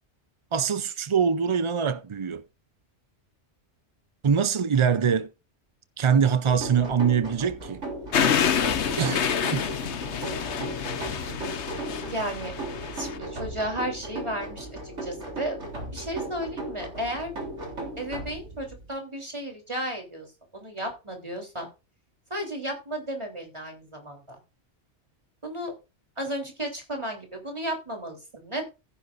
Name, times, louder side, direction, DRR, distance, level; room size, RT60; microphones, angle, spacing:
voice 1, 0.5-2.4 4.2-5.3 6.0-7.8 9.0-9.7, right 7 dB, 45° right, 0.4 m, -23 dB
sound 1, 6.4-18.9, right 1 dB, 80° right, 3.8 m, -36 dB
sound 2, 8.1-13.2, left 7 dB, 70° left, 1.2 m, -27 dB
voice 2, 12.1-12.5 12.9-15.6 15.9-17.3 18.0-20.3 20.5-21.7 22.3-24.4 25.4-25.7 26.2-28.6, right 1 dB, 25° right, 3.5 m, -33 dB
15.0 x 10.0 x 2.5 m
omnidirectional pair, 1.2 m